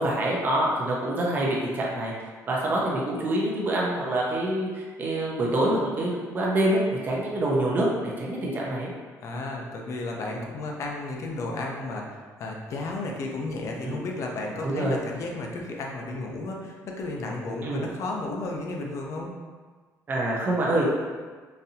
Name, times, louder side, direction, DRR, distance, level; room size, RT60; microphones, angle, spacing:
voice 1, 0.0-2.1 2.5-8.9 13.8-14.0 14.6-15.0 17.6-17.8 20.1-20.9, right 1 dB, 30° right, -4 dB, 0.5 m, -26 dB
voice 2, 9.2-19.3, left 2 dB, 55° left, 0 dB, 0.5 m, -33 dB
3.9 x 2.6 x 2.7 m, 1.5 s
cardioid pair, 160°, 6 cm